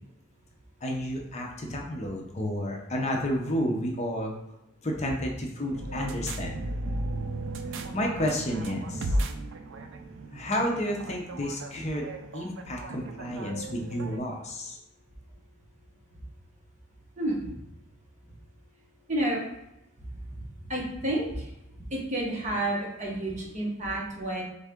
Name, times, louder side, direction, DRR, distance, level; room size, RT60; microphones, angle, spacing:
voice 1, 0.8-4.3 4.8-6.6 7.9-9.1 10.3-12.0 12.3-14.8, equal, 30° left, 0 dB, 0.6 m, -31 dB
sound 1, 5.7-14.2, right 1 dB, 60° right, 0.4 m, -35 dB
voice 2, 17.2-17.5 19.1-19.4 20.1-20.4 20.7-21.4 21.9-24.4, right 1 dB, 35° right, -2 dB, 1.1 m, -30 dB
3.9 x 3.6 x 3.5 m, 0.90 s
head